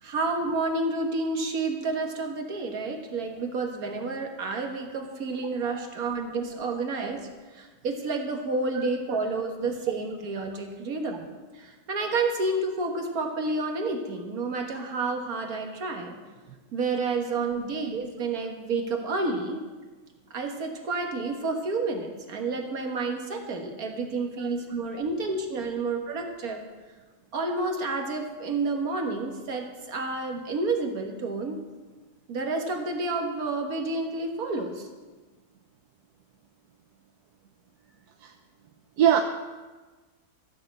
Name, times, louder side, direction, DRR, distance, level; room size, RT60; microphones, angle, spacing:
voice 1, 0.0-7.3 7.5-11.3 11.5-16.2 16.7-19.6 20.3-26.6 27.3-31.6 32.3-34.9, right 3 dB, 65° right, 3 dB, 1.9 m, -30 dB
voice 2, 8.7-9.2 24.4-24.5 38.2-38.3 39.0-39.2, right 10 dB, 80° right, 5 dB, 1.3 m, -24 dB
13.5 x 6.5 x 7.8 m, 1.3 s
omnidirectional pair, 1.7 m